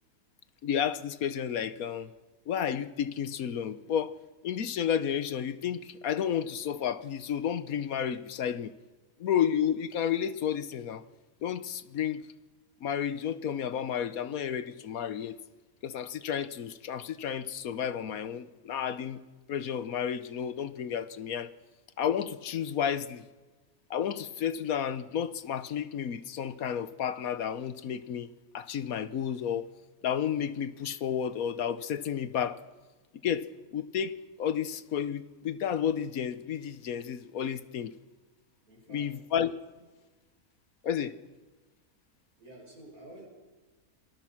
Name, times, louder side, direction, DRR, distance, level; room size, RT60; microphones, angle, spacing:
voice 1, 0.6-2.1 2.5-4.2 4.4-8.7 9.2-11.0 11.4-12.2 12.8-15.4 15.8-19.2 19.5-21.5 22.0-23.3 23.9-28.3 28.5-29.7 30.0-32.6 33.2-33.5 33.7-34.1 34.4-37.9 38.9-39.5 40.8-41.1, left 8 dB, 70° left, 14 dB, 1.3 m, -31 dB
voice 2, 38.6-39.2 42.4-43.3, right 1 dB, 70° right, 0 dB, 6.9 m, -50 dB
27.0 x 20.5 x 5.9 m, 1.3 s
omnidirectional pair, 1.6 m